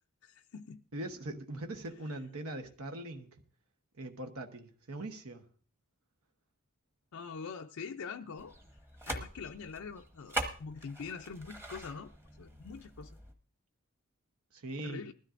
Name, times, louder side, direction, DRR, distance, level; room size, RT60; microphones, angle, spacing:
voice 1, 0.2-0.8 2.6-2.7 7.1-8.6 9.1-12.1 12.4-13.2 14.8-15.1, left 5 dB, 70° left, 0.5 m, -44 dB
voice 2, 0.9-3.3 3.9-5.4 14.5-15.0, right 1 dB, 80° right, 1.1 m, -41 dB
sound 1, 8.4-13.3, right 1 dB, 10° right, 1.0 m, -42 dB
19.5 x 13.0 x 2.5 m
head